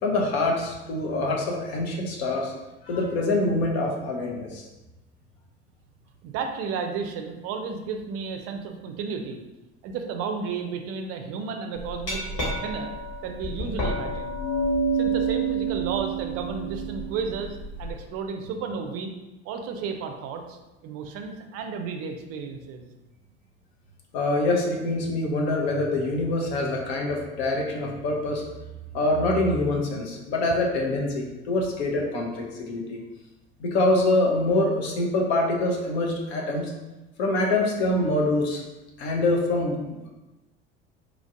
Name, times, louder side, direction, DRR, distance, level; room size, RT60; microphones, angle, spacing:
voice 1, 0.0-2.5 2.8-4.7 24.1-28.4 28.9-33.0 33.6-36.7 37.2-38.6 39.0-39.8, left 2 dB, 70° left, -1 dB, 0.7 m, -25 dB
voice 2, 6.2-9.4 9.8-12.9 13.2-14.4 14.9-19.1 19.4-22.9, right 5 dB, 50° right, 5 dB, 0.4 m, -33 dB
Glass, 11.8-17.9, right 3 dB, 55° left, 1.2 m, -28 dB
3.1 x 2.5 x 2.5 m, 1.0 s
hypercardioid pair, 65°, 32 cm